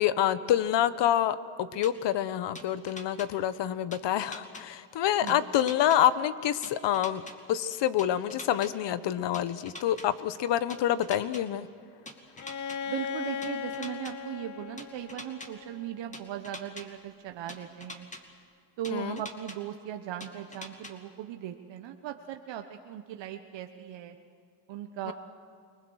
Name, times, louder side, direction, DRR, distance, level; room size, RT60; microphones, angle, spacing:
voice 1, 0.0-7.2 7.5-11.7 18.9-19.2 25.1-25.2, left 11 dB, 60° left, 14 dB, 1.2 m, -27 dB
sound 1, 1.8-1.9 2.5-3.3 3.9-4.6 5.3-6.0 6.6-7.3 8.0-8.7 9.3-10.1 10.7-11.4 12.1-12.8 13.4-14.1 14.8-15.5 16.1-16.8 17.5-18.2 18.8-19.6 20.2-20.9, left 1 dB, 15° left, 2.5 m, -43 dB
Bowed string instrument, 12.4-16.1, left 7 dB, 40° left, 0.9 m, -38 dB
voice 2, 12.8-18.1 18.8-24.2 24.7-25.1, right 11 dB, 65° right, 5 dB, 1.3 m, -38 dB
29.0 x 20.5 x 6.4 m, 2.3 s
cardioid pair, 95°, 47 cm